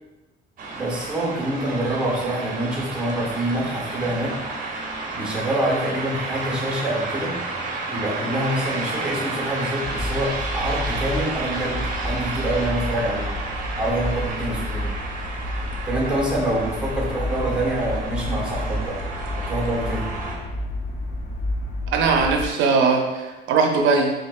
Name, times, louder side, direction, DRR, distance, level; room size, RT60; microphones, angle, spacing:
sound 1, 0.6-20.4, right 3 dB, 45° right, 0.7 m, -31 dB
voice 1, 0.7-4.4 5.1-7.4 7.9-13.3 13.8-14.9 15.9-19.0 19.3-20.1, right 1 dB, 5° right, -3 dB, 1.1 m, -26 dB
sound 2, 9.8-22.5, left 1 dB, 35° left, 0.6 m, -30 dB
voice 2, 21.9-24.1, right 4 dB, 85° right, 2 dB, 0.6 m, -20 dB
5.4 x 2.9 x 2.3 m, 1.1 s
cardioid pair, 135°, 20 cm